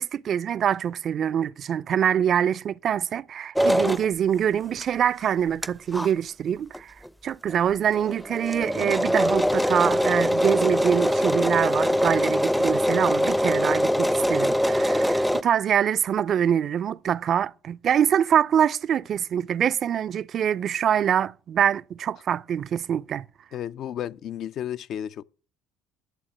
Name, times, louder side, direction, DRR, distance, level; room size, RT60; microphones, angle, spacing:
voice 1, 0.0-6.9 7.2-23.2, right 9 dB, 50° right, 0.4 m, -24 dB
sound 1, 3.6-4.1 4.8-4.9 5.2-5.3 5.6-5.7 5.9-6.1 6.7-6.8 7.1-7.2 7.5-7.6 7.9-15.4, equal, ahead, 0.5 m, -23 dB
voice 2, 23.5-25.2, left 10 dB, 60° left, 0.5 m, -33 dB
11.5 x 7.0 x 7.4 m
hypercardioid pair, 60°, 0 cm